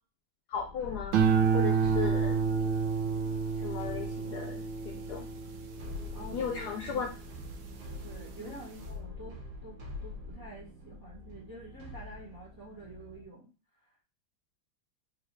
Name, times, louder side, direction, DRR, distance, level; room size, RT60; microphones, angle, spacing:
voice 1, 0.5-1.2 1.5-2.4 3.6-5.3 6.3-7.1 8.4-8.5, left 7 dB, 75° left, 2 dB, 0.9 m, -36 dB
sound 1, 0.5-13.3, left 2 dB, 65° right, 1.7 m, -45 dB
sound 2, 1.1-7.6 8.1-8.6, right 6 dB, 85° right, 1.4 m, -29 dB
voice 2, 6.1-7.0 8.0-13.5, right 1 dB, 20° right, -4 dB, 0.6 m, -48 dB
3.8 x 3.1 x 3.0 m, 0.33 s
omnidirectional pair, 2.2 m